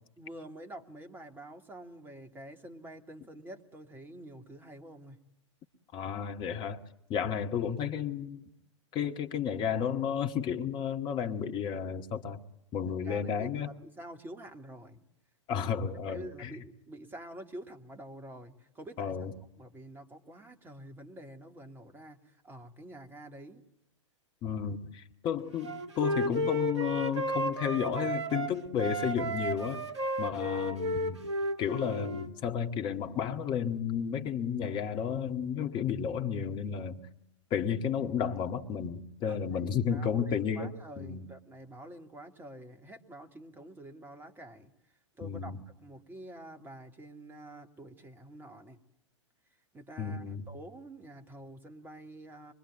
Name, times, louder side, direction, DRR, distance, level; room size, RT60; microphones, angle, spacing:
voice 1, 0.2-5.2 13.0-15.0 16.1-19.2 19.6-23.6 39.3-44.7 45.2-48.8 49.7-52.5, right 1 dB, 15° right, 2.5 m, -48 dB
voice 2, 5.9-6.8 7.1-8.5 8.9-12.4 12.7-13.7 15.5-16.6 19.0-19.3 24.4-29.8 30.2-31.2 31.6-37.0 37.5-41.3 45.2-45.6 50.0-50.5, left 8 dB, 30° left, 1.9 m, -32 dB
Wind instrument woodwind instrument, 25.6-28.5 28.8-32.3, right 1 dB, 65° right, 2.1 m, -33 dB
24.5 x 23.5 x 9.2 m
figure-of-eight pair, 100°, 16 cm